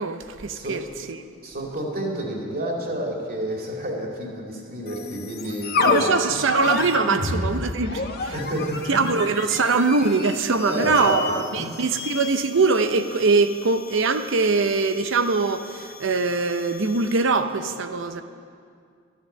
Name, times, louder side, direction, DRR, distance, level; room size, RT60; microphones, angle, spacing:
voice 1, 0.0-1.2 5.8-8.4 8.9-18.2, right 4 dB, 65° right, 0.7 m, -22 dB
voice 2, 1.4-6.2 7.2-7.6 8.3-9.0 10.6-11.2 11.5-11.8, right 1 dB, 45° right, 2.4 m, -30 dB
sound 1, 4.9-17.3, left 4 dB, 50° left, 0.9 m, -31 dB
13.5 x 10.5 x 6.8 m
head